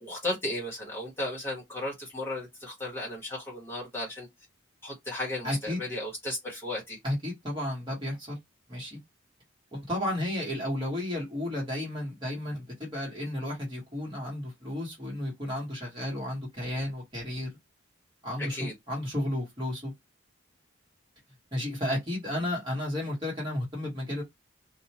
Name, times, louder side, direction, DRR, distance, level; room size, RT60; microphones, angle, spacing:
voice 1, 0.0-4.3 4.8-7.0 18.4-18.7, left 1 dB, 10° left, 1.1 m, -35 dB
voice 2, 5.4-5.8 7.0-8.4 8.7-9.0 9.7-17.6 18.2-19.9 21.5-24.2, left 1 dB, 25° right, 1.4 m, -33 dB
2.7 x 2.1 x 2.8 m
head